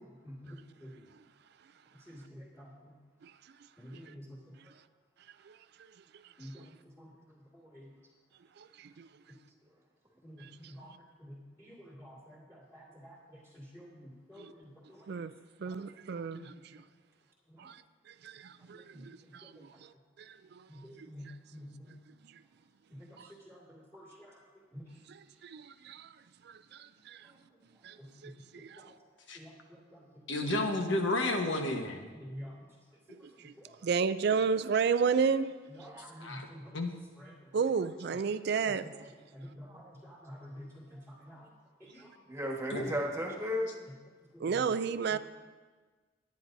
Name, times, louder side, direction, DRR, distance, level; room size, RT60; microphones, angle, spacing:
voice 1, 2.1-2.7 3.8-4.2 6.4-6.5 7.7-7.8 10.2-10.4 10.7-10.9 11.2-11.7 12.0-12.2 12.5-13.2 13.6-14.4 15.7-15.8 16.3-16.4 20.7-21.2 21.5-21.9 23.5-23.6 23.9-24.3 24.7-24.8 29.4-29.5 32.2-32.5 36.1-36.6 39.3-39.7 40.0-40.7 41.2-41.4, equal, 15° left, -7 dB, 2.1 m, -48 dB
voice 2, 8.6-9.1 10.4-10.5 10.8-11.0 14.4-14.5 15.1-15.3 15.6-16.5 17.6-17.8 18.2-19.7 20.2-20.7 21.0-21.1 23.2-23.3 25.1-26.1 26.5-27.3 27.8-28.0 28.2-28.8 33.1-33.5 33.8-35.5 37.5-39.1 44.4-45.2, right 6 dB, 60° right, 13 dB, 0.4 m, -32 dB
voice 3, 30.3-32.1 36.2-36.5 36.7-36.9 42.7-43.0, left 2 dB, 75° left, 3 dB, 1.3 m, -31 dB
voice 4, 35.8-36.3 39.6-39.9 40.9-41.0 42.3-43.7 45.1-45.2, equal, 15° right, -1 dB, 1.5 m, -36 dB
21.0 x 9.4 x 2.7 m, 1.4 s
head